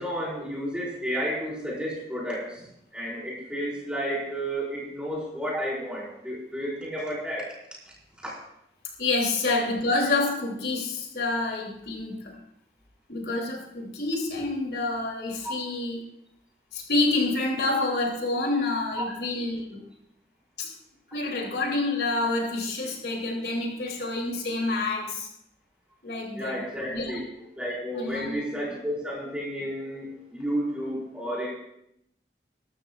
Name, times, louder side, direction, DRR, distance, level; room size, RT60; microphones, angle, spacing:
voice 1, 0.0-7.5 8.2-8.3 9.5-9.6 15.4-15.5 19.0-19.1 26.3-27.2 27.5-31.5, equal, 5° right, -6 dB, 4.9 m, -32 dB
voice 2, 9.0-12.4 13.1-16.0 16.7-19.8 20.6-20.7 21.1-25.3 26.0-26.6 26.9-27.1 27.9-28.3, left 2 dB, 70° left, 0 dB, 2.9 m, -28 dB
21.0 x 13.5 x 2.4 m, 0.77 s
head